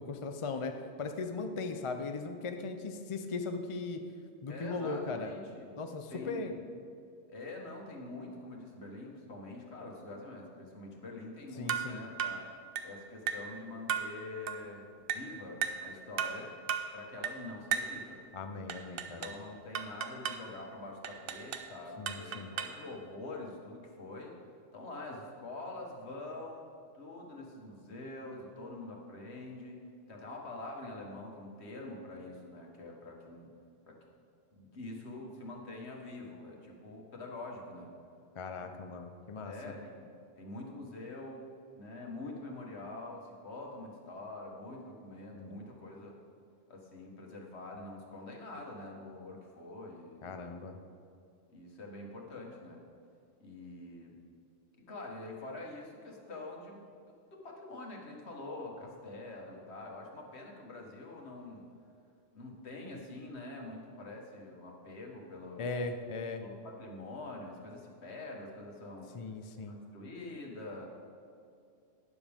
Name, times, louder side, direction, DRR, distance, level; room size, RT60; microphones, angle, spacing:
voice 1, 0.0-4.0 4.4-5.3 5.7-6.6 11.6-12.0 18.3-19.3 22.0-22.6 38.4-39.5 45.4-45.6 50.2-50.8 65.6-66.4 69.1-69.8, left 3 dB, 40° left, 6 dB, 0.4 m, -38 dB
voice 2, 4.5-5.7 6.1-6.5 7.3-12.4 12.8-16.5 16.9-18.2 19.2-24.4 24.7-33.5 33.9-34.0 34.5-37.9 38.6-38.7 39.5-41.5 41.7-46.2 46.7-50.7 51.5-52.8 53.4-54.2 54.8-56.9 57.3-61.7 62.3-65.8 66.4-69.1 69.7-70.9, left 2 dB, 60° left, 0 dB, 1.7 m, -45 dB
sound 1, 11.7-11.9 12.2-12.4 12.8-12.9 13.3-13.5 13.9-14.1 14.5-14.6 15.1-15.3 15.6-15.9 16.2-16.4 16.7-16.9 17.2-17.4 17.7-18.0 18.7-19.4 19.7-20.4 21.0-21.7 22.1-22.8, right 8 dB, 55° right, 0.7 m, -35 dB
12.0 x 10.0 x 3.6 m, 2.5 s
omnidirectional pair, 1.3 m